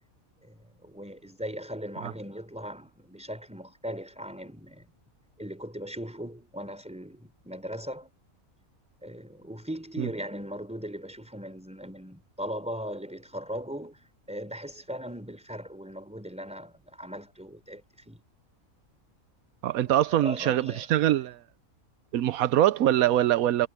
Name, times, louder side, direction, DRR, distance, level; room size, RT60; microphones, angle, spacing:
voice 1, 0.4-4.9 5.4-8.1 9.0-18.2 19.9-20.9, equal, 5° right, 4.1 m, -39 dB
voice 2, 19.6-21.4 22.1-23.7, right 12 dB, 85° right, 1.1 m, -23 dB
omnidirectional pair, 1.4 m